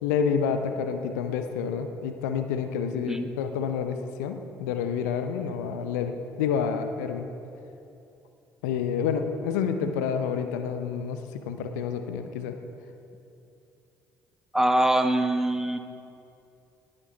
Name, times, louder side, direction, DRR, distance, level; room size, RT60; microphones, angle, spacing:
voice 1, 0.0-7.3 8.6-11.2 11.5-12.6, left 6 dB, 75° left, 8 dB, 0.7 m, -28 dB
voice 2, 14.5-15.8, right 1 dB, 5° right, 7 dB, 1.2 m, -23 dB
18.5 x 9.8 x 4.0 m, 2.7 s
figure-of-eight pair, 50°, 9 cm